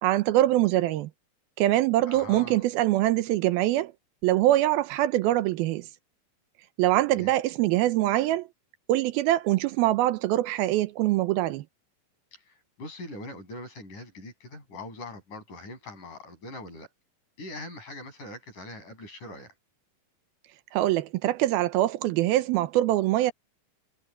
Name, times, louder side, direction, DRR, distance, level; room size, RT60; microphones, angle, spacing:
voice 1, 0.0-1.1 1.6-3.9 4.2-5.9 6.8-8.5 8.9-11.7 20.7-23.3, right 15 dB, 85° right, 2.7 m, -23 dB
voice 2, 2.1-2.7 7.1-7.3 12.3-16.9 17.4-19.5, left 2 dB, 55° left, 9.4 m, -42 dB
omnidirectional pair, 4.2 m